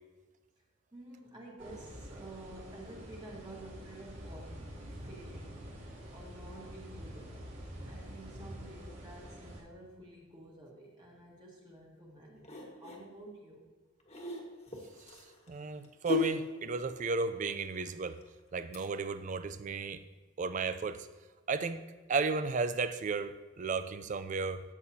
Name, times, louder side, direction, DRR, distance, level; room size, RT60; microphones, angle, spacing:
voice 1, 0.9-5.7 6.1-7.6 7.8-13.6, right 1 dB, 20° right, -3 dB, 1.6 m, -51 dB
sound 1, 1.6-9.6, equal, 65° right, 2.7 m, -47 dB
sound 2, 12.4-13.0 14.0-18.9 19.2-19.3, left 3 dB, 35° left, 1.4 m, -38 dB
voice 2, 15.5-18.2 18.5-20.0 20.4-21.1 21.5-21.8 22.1-24.6, right 4 dB, 40° right, 12 dB, 0.4 m, -34 dB
13.0 x 7.8 x 2.8 m, 1.3 s
head